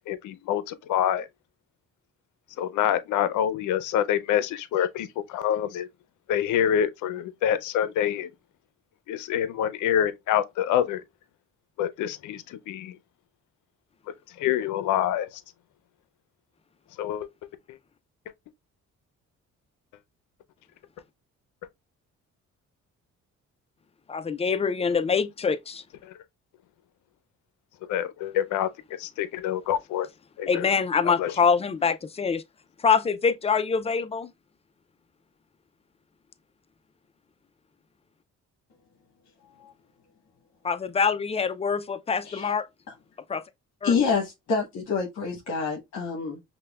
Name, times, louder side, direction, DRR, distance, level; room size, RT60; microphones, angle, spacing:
voice 1, 0.1-1.3 2.6-5.9 6.3-8.3 9.1-11.0 11.8-13.0 14.4-15.4 17.0-17.3 17.7-17.8 26.0-26.1 27.9-28.7 29.0-30.1 30.4-30.7 31.2-31.3, left 10 dB, 80° left, 0.5 m, -26 dB
voice 2, 24.1-25.8 30.5-32.4 32.8-34.3 40.6-42.7 43.3-43.4 43.8-43.9, left 5 dB, 20° left, 0.3 m, -25 dB
voice 3, 43.8-46.4, left 5 dB, 65° left, 1.0 m, -27 dB
5.5 x 2.2 x 2.2 m
cardioid pair, 90°, 30 cm